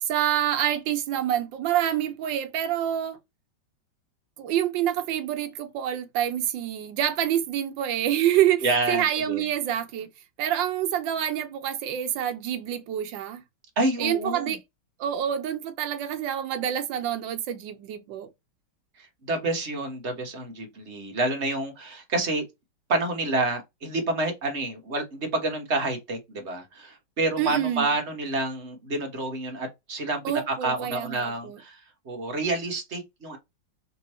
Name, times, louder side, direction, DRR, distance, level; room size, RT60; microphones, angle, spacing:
voice 1, 0.0-3.2 4.4-10.1 10.4-13.4 14.0-14.6 15.0-18.3 27.4-27.9 30.2-31.6, right 11 dB, 85° right, 1.5 m, -27 dB
voice 2, 8.6-9.4 13.8-14.6 19.0-22.4 22.9-33.4, right 2 dB, 40° right, 1.3 m, -28 dB
3.5 x 3.0 x 4.2 m
omnidirectional pair, 2.0 m